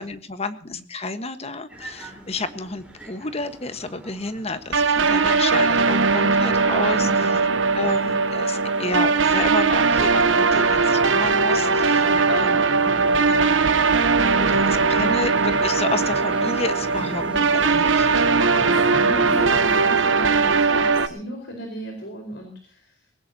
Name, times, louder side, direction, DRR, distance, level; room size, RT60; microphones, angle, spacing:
voice 1, 0.0-7.3 7.7-12.6 13.3-13.4 14.5-18.5, left 3 dB, 35° left, 11 dB, 1.4 m, -31 dB
sound 1, 1.7-20.0, equal, 5° right, 4.2 m, -38 dB
sound 2, 4.7-21.1, right 4 dB, 80° right, 1.1 m, -19 dB
voice 2, 7.0-8.1 12.0-13.7 14.4-15.0 17.0-17.4 18.6-22.9, equal, 60° left, 3 dB, 4.6 m, -36 dB
20.5 x 18.0 x 2.9 m, 0.44 s
head